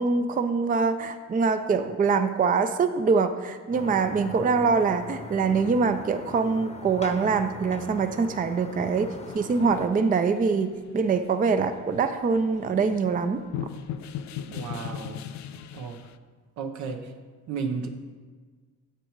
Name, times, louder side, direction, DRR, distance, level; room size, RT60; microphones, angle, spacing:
voice 1, 0.0-9.1 9.3-10.7 10.9-13.4, right 5 dB, 30° right, 9 dB, 0.5 m, -24 dB
sound 1, 3.7-9.9, left 3 dB, 20° left, 0.8 m, -41 dB
sound 2, 9.3-16.1, left 9 dB, 70° left, 0.5 m, -38 dB
voice 2, 14.5-15.2 15.7-16.0 16.6-17.1 17.5-17.9, right 5 dB, 75° right, 5 dB, 1.0 m, -33 dB
10.0 x 7.1 x 3.1 m, 1.5 s
cardioid pair, 90°, 30 cm